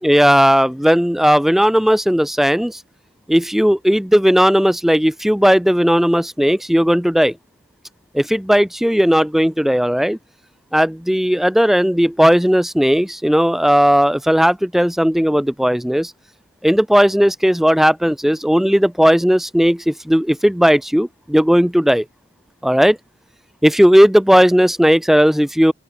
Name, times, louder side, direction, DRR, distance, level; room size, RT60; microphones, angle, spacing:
voice 1, 0.0-2.8 3.3-7.3 8.1-10.2 10.7-16.1 16.6-22.0 22.6-23.0 23.6-25.7, equal, ahead, 0.3 m, -15 dB
open air
head